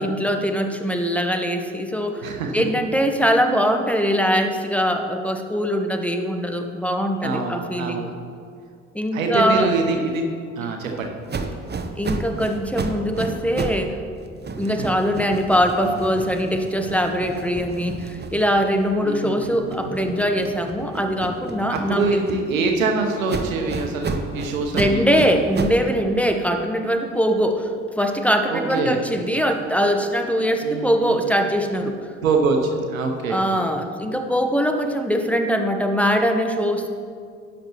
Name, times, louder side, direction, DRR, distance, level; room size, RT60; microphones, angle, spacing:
voice 1, 0.0-8.1 8.9-9.7 12.0-14.0 14.6-22.3 24.7-27.7 28.0-32.0 33.3-36.9, equal, 5° left, 5 dB, 1.0 m, -22 dB
voice 2, 2.2-2.5 7.2-8.1 9.1-10.2 10.6-11.1 14.7-14.8 19.0-20.0 21.7-25.1 28.5-29.0 30.6-31.2 32.2-33.4, right 4 dB, 90° right, 3 dB, 0.9 m, -24 dB
sound 1, 11.3-13.9 14.2-19.0 19.4-22.7 23.3-25.9, right 3 dB, 25° right, 0.9 m, -31 dB
12.5 x 9.5 x 3.0 m, 2.2 s
hypercardioid pair, 50°, 39 cm